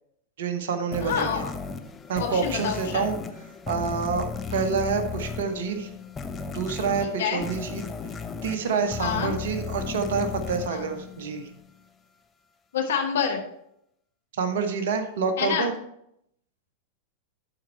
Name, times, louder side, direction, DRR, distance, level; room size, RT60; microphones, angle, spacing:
voice 1, 0.4-1.4 2.1-3.1 3.7-5.9 6.5-7.9 8.4-11.5 14.3-15.7, right 5 dB, 60° right, 8 dB, 1.0 m, -27 dB
sound 1, 0.9-11.7, left 5 dB, 20° left, 0.7 m, -35 dB
voice 2, 1.0-1.5 2.2-3.1 7.2-7.4 9.0-9.3 10.7-10.8 12.7-13.4 15.4-15.7, left 7 dB, 60° left, 1 dB, 1.7 m, -27 dB
12.0 x 4.5 x 4.4 m, 0.75 s
figure-of-eight pair, 90°, 0 cm